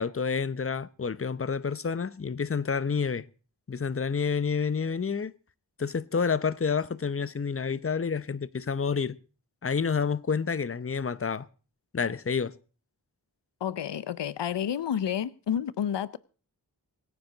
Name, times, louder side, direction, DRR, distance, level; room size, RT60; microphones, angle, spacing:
voice 1, 0.0-3.3 3.7-5.3 5.8-9.2 9.6-11.5 11.9-12.5, left 5 dB, 35° left, 0.8 m, -29 dB
voice 2, 13.6-16.2, left 9 dB, 85° left, 0.7 m, -30 dB
25.0 x 9.8 x 4.0 m
wide cardioid pair, 70°, 41 cm